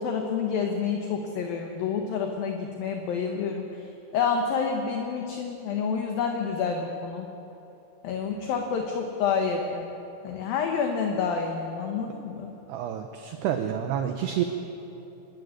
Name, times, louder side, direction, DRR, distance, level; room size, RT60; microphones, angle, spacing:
voice 1, 0.0-3.7 4.1-7.3 8.0-9.9 10.2-12.5, left 6 dB, 65° left, 2 dB, 2.5 m, -28 dB
voice 2, 12.7-14.4, right 10 dB, 75° right, 5 dB, 2.6 m, -29 dB
24.5 x 13.5 x 9.6 m, 2.9 s
omnidirectional pair, 5.6 m